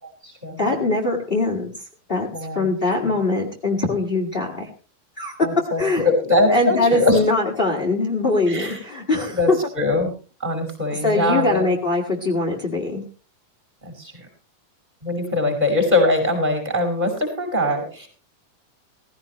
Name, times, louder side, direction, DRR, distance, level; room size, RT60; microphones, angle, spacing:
voice 1, 0.0-0.6 2.3-2.6 3.0-3.1 5.4-7.2 8.5-8.8 9.3-10.1 10.4-11.7 13.8-14.3 15.0-18.1, left 2 dB, 10° right, 3 dB, 5.1 m, -22 dB
voice 2, 0.6-1.7 2.1-4.7 5.2-5.4 5.8-6.0 6.5-9.6 10.9-13.0, left 2 dB, 25° left, 0 dB, 1.2 m, -22 dB
17.5 x 15.5 x 3.1 m, 0.36 s
omnidirectional pair, 4.2 m